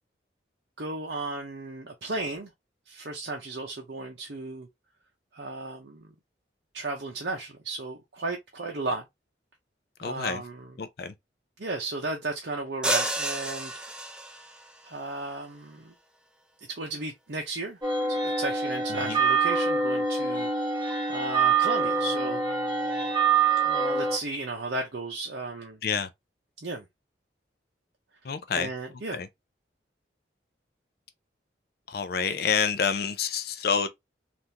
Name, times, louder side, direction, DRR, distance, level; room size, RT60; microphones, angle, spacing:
voice 1, 0.8-2.5 2.9-4.7 5.3-6.1 6.7-9.1 10.0-10.7 11.6-13.7 14.8-15.9 16.7-17.8 18.1-22.4 23.6-25.8 26.6-26.9 28.6-29.2, right 2 dB, 60° right, 0.7 m, -34 dB
voice 2, 10.0-10.4 10.8-11.1 18.9-19.2 25.8-26.1 28.2-28.7 29.1-29.3 31.9-33.9, left 6 dB, 55° left, 0.4 m, -28 dB
sound 1, 12.8-14.6, right 1 dB, 5° right, 0.4 m, -30 dB
sound 2, 17.8-24.2, right 4 dB, 25° right, 1.3 m, -25 dB
3.5 x 2.5 x 2.7 m
head